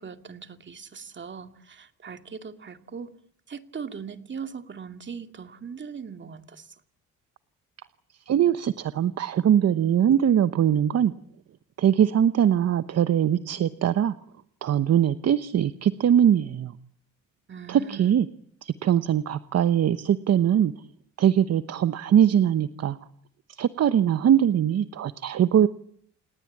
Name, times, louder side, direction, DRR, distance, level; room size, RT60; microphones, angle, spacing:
voice 1, 0.0-3.1 3.5-6.7 17.5-18.1, right 6 dB, 40° right, 2.4 m, -40 dB
voice 2, 8.3-11.1 11.8-14.1 14.6-16.7 17.7-18.3 18.6-20.7 21.2-23.0 23.6-25.7, right 9 dB, 55° right, 1.0 m, -21 dB
29.0 x 19.0 x 8.7 m
cardioid pair, 90°, 30 cm